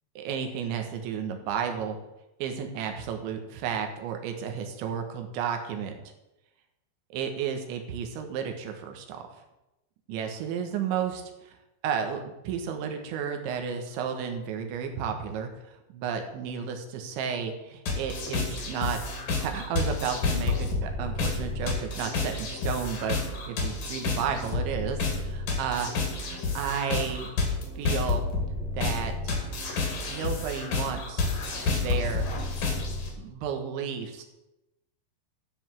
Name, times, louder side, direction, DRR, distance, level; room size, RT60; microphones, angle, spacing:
voice 1, 0.2-2.0 2.4-6.0 7.1-9.3 10.1-11.6 11.8-15.5 15.9-19.0 19.4-23.2 23.5-27.3 27.8-28.2 28.7-29.3 30.1-31.2 31.7-32.3 33.2-34.2, right 7 dB, 75° right, 5 dB, 3.5 m, -32 dB
sound 1, 17.9-33.1, left 3 dB, 50° left, 3.4 m, -30 dB
13.0 x 5.3 x 7.5 m, 0.95 s
omnidirectional pair, 5.6 m